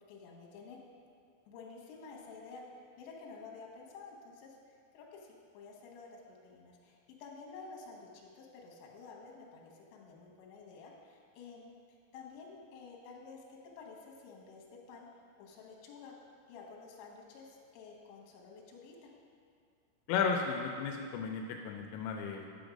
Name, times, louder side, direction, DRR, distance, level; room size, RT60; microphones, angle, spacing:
voice 1, 0.1-0.8 1.5-11.7 12.1-15.1 15.4-16.1 16.5-19.1, left 4 dB, 70° left, -2 dB, 3.1 m, -51 dB
voice 2, 20.1-22.5, left 5 dB, 85° left, 3 dB, 3.1 m, -34 dB
9.2 x 6.1 x 5.1 m, 2.2 s
omnidirectional pair, 5.7 m